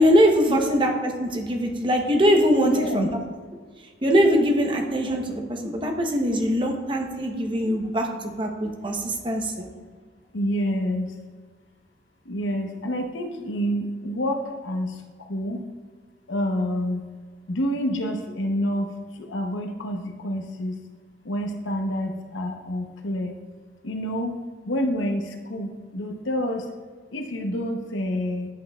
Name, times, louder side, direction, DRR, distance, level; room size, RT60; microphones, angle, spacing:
voice 1, 0.0-3.1 4.0-9.7, equal, 25° right, 3 dB, 0.8 m, -22 dB
voice 2, 2.6-3.1 10.3-11.1 12.3-15.6 16.3-17.1 17.5-18.9 19.2-20.8 21.2-23.3 23.8-24.3 24.7-26.7 27.1-28.5, equal, 90° left, 4 dB, 0.8 m, -28 dB
10.5 x 5.6 x 2.3 m, 1.6 s
head